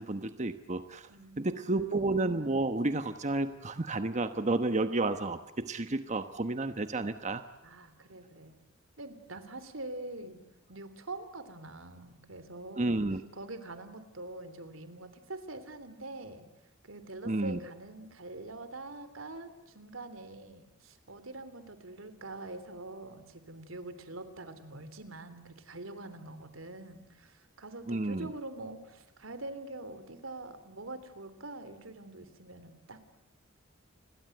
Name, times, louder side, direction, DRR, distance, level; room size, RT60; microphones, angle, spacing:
voice 1, 0.0-1.1 1.4-7.4 12.8-13.2 17.2-17.6 27.9-28.3, right 2 dB, 35° right, 9 dB, 1.1 m, -31 dB
voice 2, 1.1-1.9 7.6-8.6 9.0-10.4 10.7-13.0 13.3-16.5 16.8-33.2, right 2 dB, 85° right, 11 dB, 3.3 m, -44 dB
29.5 x 22.5 x 7.9 m, 0.91 s
head